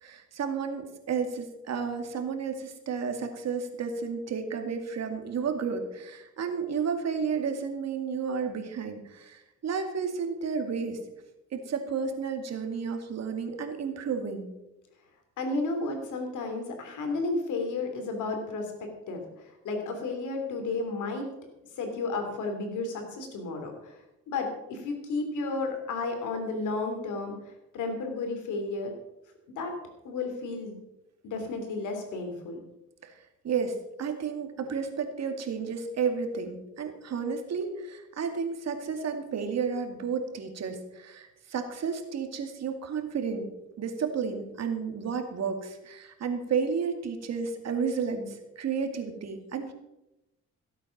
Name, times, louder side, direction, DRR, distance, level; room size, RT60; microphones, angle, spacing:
voice 1, 0.0-11.0 11.5-14.5 33.0-33.1 33.4-43.5 43.8-49.7, right 6 dB, 60° right, 5 dB, 2.3 m, -32 dB
voice 2, 15.4-19.2 19.5-21.3 21.8-24.0 24.3-28.9 29.5-29.7 30.0-30.8 31.2-32.6, left 3 dB, 80° left, 4 dB, 3.3 m, -32 dB
16.0 x 8.5 x 5.9 m, 0.94 s
cardioid pair, 90°, 30 cm